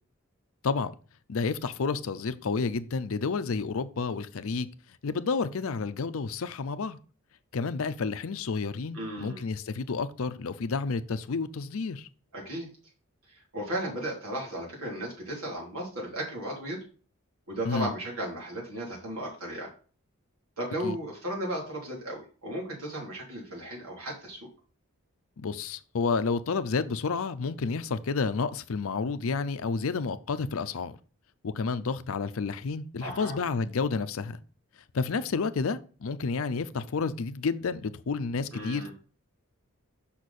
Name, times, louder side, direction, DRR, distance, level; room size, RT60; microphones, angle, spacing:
voice 1, 1.3-4.7 5.0-7.0 7.5-12.1 17.7-17.9 20.8-21.0 25.4-31.0 31.4-34.4 34.9-38.9, left 4 dB, 70° left, 0.5 m, -30 dB
voice 2, 8.9-9.4 12.3-12.7 13.3-16.8 17.5-19.7 20.6-24.4 33.0-33.5 38.5-38.9, right 1 dB, 75° right, 3.3 m, -35 dB
6.4 x 5.7 x 4.2 m
head